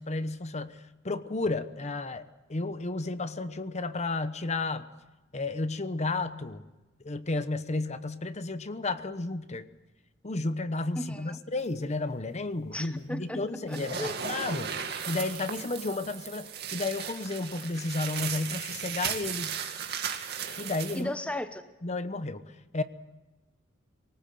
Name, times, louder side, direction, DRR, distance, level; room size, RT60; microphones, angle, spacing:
voice 1, 0.0-4.9 5.3-6.6 7.0-9.6 10.2-14.7 15.1-19.6 20.3-21.1 21.8-22.4 22.7-22.8, left 2 dB, 35° left, 12 dB, 1.0 m, -32 dB
voice 2, 11.0-11.4 12.7-13.4 13.7-14.2 21.0-21.6, left 1 dB, 5° left, 9 dB, 0.8 m, -35 dB
sound 1, 13.7-21.0, right 7 dB, 55° right, 2.3 m, -36 dB
24.5 x 18.5 x 7.7 m, 1.1 s
head